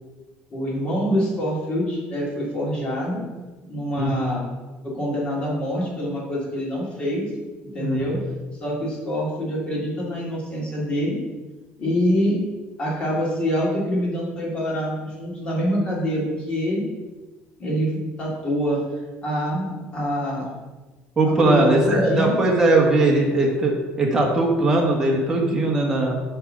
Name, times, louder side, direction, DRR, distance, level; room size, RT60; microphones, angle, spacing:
voice 1, 0.5-3.2 3.7-4.5 4.8-7.3 7.7-8.2 8.6-11.2 11.8-12.4 12.8-16.8 17.6-20.5 21.3-22.3, equal, 25° left, -4 dB, 2.2 m, -25 dB
voice 2, 3.9-4.3 7.8-8.1 21.2-26.2, right 2 dB, 15° right, -1 dB, 1.3 m, -20 dB
7.1 x 3.6 x 6.3 m, 1.2 s
cardioid pair, 175°, 4 cm